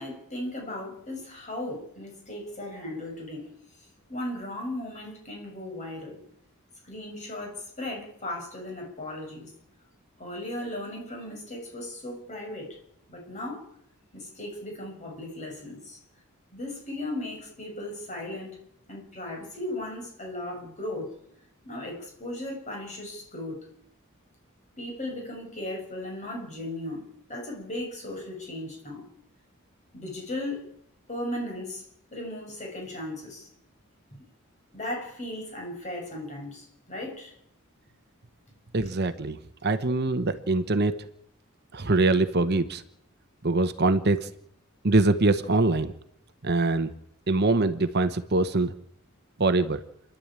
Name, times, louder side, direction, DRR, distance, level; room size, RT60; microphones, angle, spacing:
voice 1, 0.0-3.5 4.1-6.2 6.8-9.5 10.2-12.8 13.1-13.6 14.1-16.0 16.5-18.6 18.9-21.2 21.6-23.6 24.8-27.0 27.3-29.1 29.9-30.7 31.1-31.8 32.1-33.5 34.7-37.3, left 1 dB, 35° left, 0 dB, 6.7 m, -36 dB
voice 2, 38.7-40.9 41.7-42.8 43.4-44.2 44.8-45.9 46.4-46.9 47.3-48.7 49.4-49.8, right 2 dB, 50° right, 10 dB, 1.0 m, -23 dB
28.5 x 11.5 x 8.9 m, 0.74 s
head